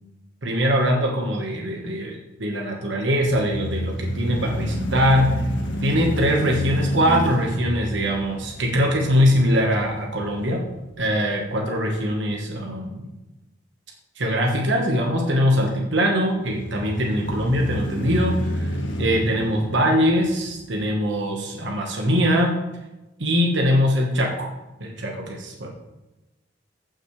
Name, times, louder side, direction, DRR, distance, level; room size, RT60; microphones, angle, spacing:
voice 1, 0.4-5.3 5.8-10.6 11.0-13.1 14.2-18.7 19.0-22.5 23.2-24.5 24.8-25.7, equal, 70° right, 0 dB, 1.3 m, -22 dB
sound 1, 3.1-11.2 11.7-11.8 16.4-20.8, equal, 75° left, 1.5 m, -29 dB
14.5 x 6.4 x 3.2 m, 1.0 s
head